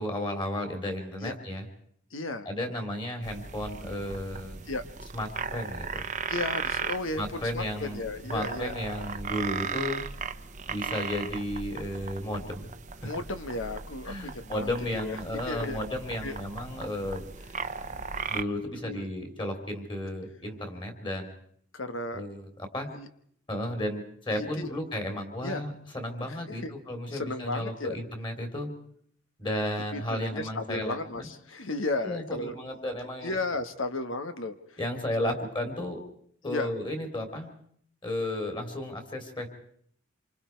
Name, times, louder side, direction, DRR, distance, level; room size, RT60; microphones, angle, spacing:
voice 1, 0.0-1.7 2.5-4.6 5.1-6.1 7.2-8.0 8.3-10.0 10.7-12.7 13.0-13.1 14.1-17.2 18.3-21.3 22.1-22.4 22.7-22.9 23.5-28.7 29.4-31.3 32.0-33.3 34.8-36.0 36.4-37.5 38.0-39.5, left 1 dB, 25° left, 5 dB, 3.5 m, -33 dB
voice 2, 2.1-2.5 4.7-4.8 6.3-8.7 13.0-15.2 15.5-15.8 16.2-16.4 18.8-19.1 21.7-22.2 22.9-23.1 24.3-24.7 25.4-25.6 26.2-26.7 27.1-28.0 29.9-32.6 33.2-34.8 35.2-35.3 36.4-36.7, left 2 dB, 70° left, 9 dB, 1.5 m, -34 dB
sound 1, 3.2-18.4, right 5 dB, 35° right, 1.0 m, -37 dB
27.0 x 25.0 x 4.6 m, 0.64 s
head